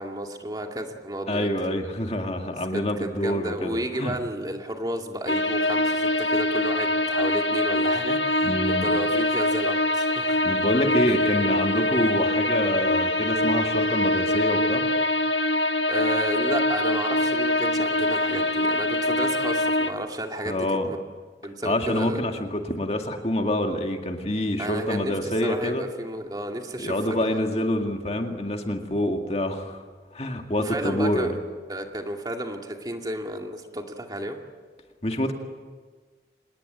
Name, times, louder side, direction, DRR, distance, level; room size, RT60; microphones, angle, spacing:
voice 1, 0.0-1.5 2.7-10.4 11.1-11.3 15.9-21.0 21.4-22.2 24.6-27.2 30.6-31.4 31.7-34.4, right 1 dB, 20° right, 3 dB, 2.3 m, -32 dB
voice 2, 1.3-4.1 8.4-8.9 10.4-14.8 20.5-20.9 21.6-25.8 26.8-29.8 30.1-31.3 35.0-35.3, left 1 dB, 35° left, 4 dB, 2.0 m, -26 dB
sound 1, 5.3-19.9, left 1 dB, 80° left, 1.6 m, -24 dB
26.5 x 20.0 x 9.2 m, 1.4 s
head